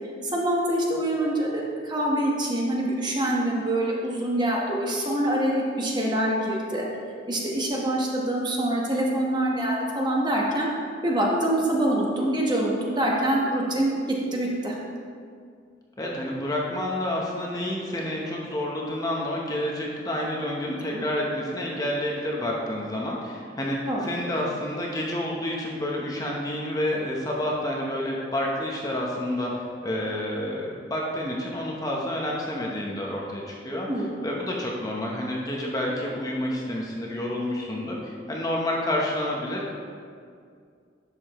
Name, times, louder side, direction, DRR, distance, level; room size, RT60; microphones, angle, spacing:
voice 1, 0.2-6.9 7.3-10.7 11.0-14.8 20.7-21.0 23.9-24.1 33.9-34.1, right 1 dB, 25° right, -3 dB, 1.2 m, -25 dB
voice 2, 16.0-33.9 34.2-39.7, left 1 dB, 20° left, -3 dB, 0.9 m, -29 dB
11.0 x 6.9 x 3.1 m, 2.2 s
head